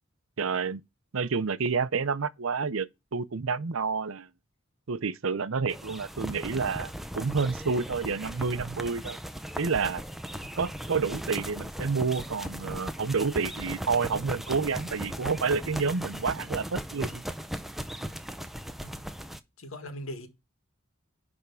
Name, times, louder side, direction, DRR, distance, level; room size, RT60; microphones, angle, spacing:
voice 1, 0.4-0.8 1.1-4.3 4.9-9.2 9.6-10.0 10.6-17.2, right 5 dB, 70° right, 0.6 m, -29 dB
Fanning with shirt, 5.7-19.4, equal, ahead, 0.6 m, -37 dB
voice 2, 19.6-20.3, left 1 dB, 85° left, 1.8 m, -40 dB
10.5 x 3.6 x 6.8 m
head